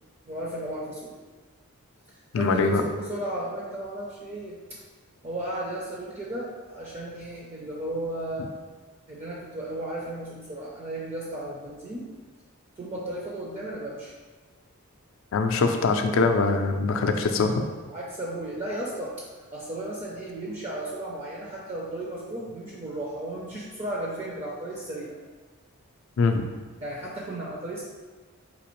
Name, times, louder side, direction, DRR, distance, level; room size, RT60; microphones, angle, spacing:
voice 1, 0.3-1.2 2.4-4.6 5.2-8.5 9.1-12.1 12.8-14.1 17.9-25.2 26.8-27.9, right 1 dB, 30° right, -4 dB, 0.4 m, -34 dB
voice 2, 2.3-2.8 15.3-17.6 26.2-26.4, left 4 dB, 60° left, 6 dB, 0.3 m, -23 dB
4.1 x 2.8 x 3.0 m, 1.3 s
head